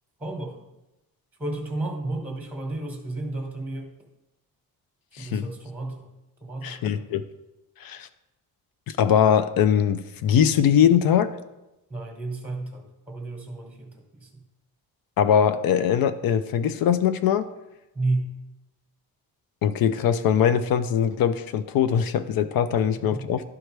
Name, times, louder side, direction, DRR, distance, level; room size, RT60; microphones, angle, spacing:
voice 1, 0.2-0.6 1.4-3.9 5.2-6.0 6.4-7.2 11.9-14.4 17.9-18.3 22.9-23.3, right 2 dB, 5° right, 1 dB, 1.3 m, -32 dB
voice 2, 5.2-5.5 6.6-7.2 7.8-8.1 8.9-11.3 15.2-17.5 19.6-23.4, left 8 dB, 70° left, 12 dB, 0.5 m, -21 dB
11.5 x 4.6 x 3.3 m, 0.95 s
wide cardioid pair, 160°, 37 cm